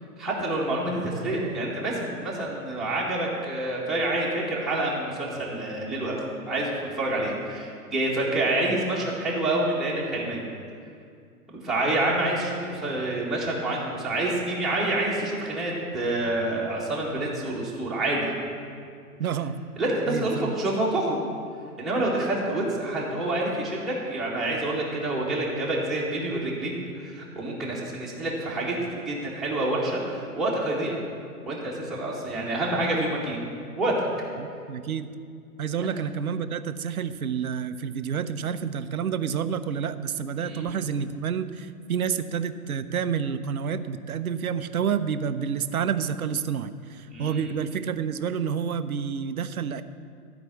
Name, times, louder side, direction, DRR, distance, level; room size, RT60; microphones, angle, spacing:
voice 1, 0.2-10.4 11.6-18.3 19.8-21.2 21.8-31.0 31.5-33.4 33.8-33.9 35.8-35.9 40.4-40.6 47.1-47.5, right 2 dB, ahead, -7 dB, 1.6 m, -27 dB
voice 2, 19.2-19.6 20.1-20.6 34.4-35.1 35.6-49.8, right 7 dB, 70° right, 11 dB, 0.7 m, -29 dB
13.5 x 5.1 x 7.3 m, 2.3 s
figure-of-eight pair, 120°, 45 cm